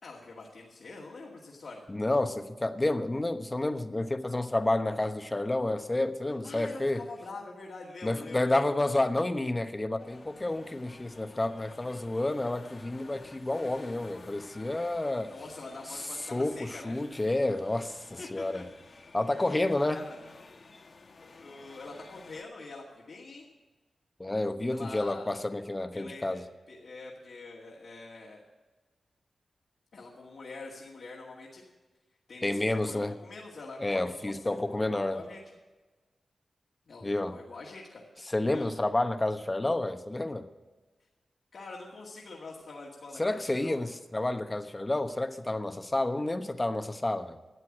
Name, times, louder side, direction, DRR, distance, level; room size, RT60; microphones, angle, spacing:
voice 1, 0.0-1.9 6.4-9.0 15.3-17.0 18.2-18.7 19.4-19.6 19.9-20.2 21.4-23.5 24.7-25.4 25.9-26.4 26.7-28.5 29.9-31.6 32.3-35.4 36.9-38.0 38.5-38.7 41.5-43.9, left 3 dB, 70° left, -3 dB, 2.3 m, -45 dB
voice 2, 1.9-7.0 8.0-15.3 15.9-16.0 16.3-18.6 19.1-20.0 24.2-26.4 32.4-33.1 33.8-35.2 37.0-37.4 38.2-40.5 43.2-47.4, left 2 dB, 25° left, 9 dB, 1.1 m, -30 dB
sound 1, 10.0-22.4, left 3 dB, 55° left, 1.1 m, -52 dB
12.5 x 8.4 x 7.4 m, 1.2 s
cardioid pair, 60°, 0 cm